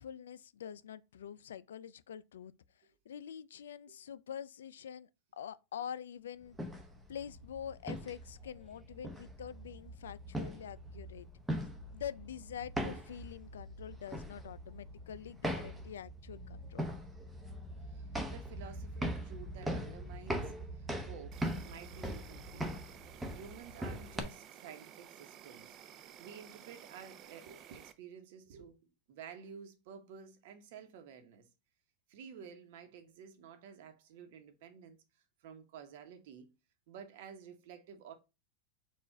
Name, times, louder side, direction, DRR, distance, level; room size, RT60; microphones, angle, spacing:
voice 1, 0.0-2.5 3.1-6.6 7.1-11.3 11.9-16.9, left 9 dB, 90° left, 0.3 m, -45 dB
sound 1, 6.5-24.2, equal, 5° right, 0.9 m, -41 dB
voice 2, 17.9-22.7 23.3-31.5 32.1-35.0 35.4-36.5 36.9-38.1, right 7 dB, 70° right, 1.0 m, -52 dB
Insect, 21.3-27.9, right 10 dB, 45° right, 0.5 m, -54 dB
4.6 x 2.4 x 4.3 m
hypercardioid pair, 110°, 0 cm